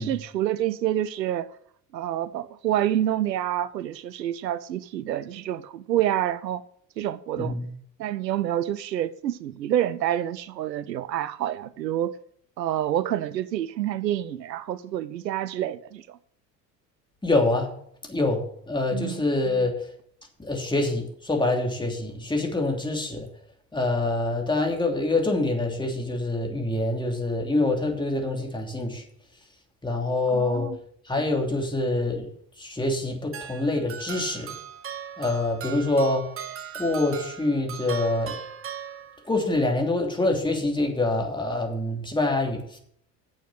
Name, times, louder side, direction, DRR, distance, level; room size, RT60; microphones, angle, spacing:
voice 1, 0.0-1.5 1.9-6.6 7.0-7.6 8.0-12.2 12.6-16.2 18.9-19.2 30.3-30.8, right 12 dB, 80° right, 0.7 m, -28 dB
voice 2, 7.4-7.7 17.2-17.7 18.1-19.7 20.4-23.3 23.7-29.0 29.8-30.7 31.1-32.3 32.6-34.5 35.2-36.3 36.7-38.3 39.3-42.8, left 2 dB, 10° left, 2.9 m, -25 dB
sound 1, 33.3-39.5, right 8 dB, 25° right, 1.2 m, -38 dB
9.0 x 7.2 x 7.6 m
figure-of-eight pair, 70°, 49 cm